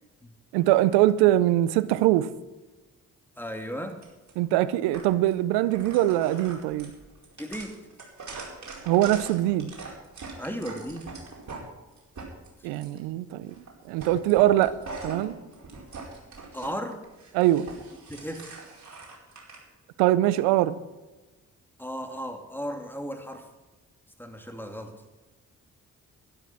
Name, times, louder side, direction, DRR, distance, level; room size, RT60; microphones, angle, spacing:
voice 1, 0.5-2.3 4.4-6.9 8.8-9.7 12.6-13.5 13.8-14.8 15.0-15.3 17.3-17.7 20.0-20.8, right 14 dB, 85° right, 0.6 m, -22 dB
voice 2, 3.4-4.0 7.4-7.8 10.4-11.1 16.5-17.0 18.1-18.5 21.8-23.5 24.2-24.9, equal, 5° left, 2.7 m, -35 dB
sound 1, 4.0-4.3 4.9-5.3 5.7-11.6 12.0-13.0 13.5-13.7 14.0-16.7 17.0-19.6, right 3 dB, 45° right, 4.8 m, -42 dB
12.5 x 11.5 x 6.1 m
hypercardioid pair, 40°, 39 cm